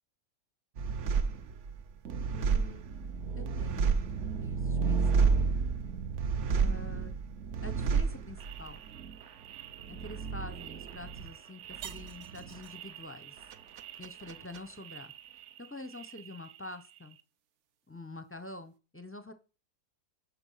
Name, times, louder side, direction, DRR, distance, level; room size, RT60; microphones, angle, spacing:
sound 1, 0.8-15.7 15.9-16.7, right 5 dB, 60° right, 0.9 m, -32 dB
voice 1, 2.3-2.9 3.4-5.3 6.5-7.1 7.6-8.8 9.9-13.4 14.0-15.1 15.6-17.2 17.9-19.3, left 2 dB, 15° left, 10 dB, 0.4 m, -46 dB
10.5 x 5.9 x 5.6 m, 0.35 s
omnidirectional pair, 1.6 m